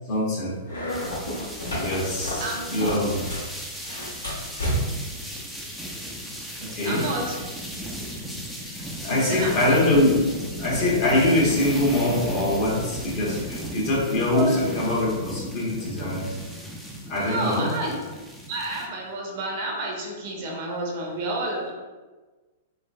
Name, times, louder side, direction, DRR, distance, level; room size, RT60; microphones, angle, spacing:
voice 1, 0.1-0.6 1.7-3.2 6.6-7.1 8.6-8.8 9.0-10.3 10.6-16.2 17.1-17.7, left 1 dB, 40° left, -5 dB, 1.1 m, -23 dB
sound 1, 0.6-3.5 3.8-5.1, equal, 75° left, 1.3 m, -30 dB
sound 2, 0.9-18.9, equal, ahead, 0.4 m, -36 dB
voice 2, 2.4-2.7 6.8-7.4 9.2-9.8 14.3-14.6 17.2-17.9 18.5-21.7, right 2 dB, 45° right, -1 dB, 0.7 m, -29 dB
3.7 x 2.3 x 2.2 m, 1.3 s
figure-of-eight pair, 105°, 0 cm